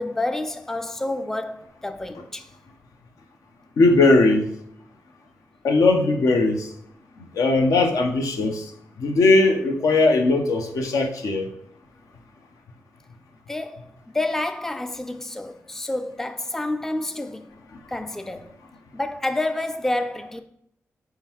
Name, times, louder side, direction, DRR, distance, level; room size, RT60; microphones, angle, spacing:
voice 1, 0.0-2.5 13.5-17.5 17.9-18.5 18.9-20.4, left 2 dB, 5° left, 0.4 m, -29 dB
voice 2, 3.8-4.5 5.6-6.7 7.3-8.6 9.0-11.5, left 2 dB, 75° left, 0.6 m, -19 dB
4.4 x 3.7 x 2.9 m
cardioid pair, 50°, 6 cm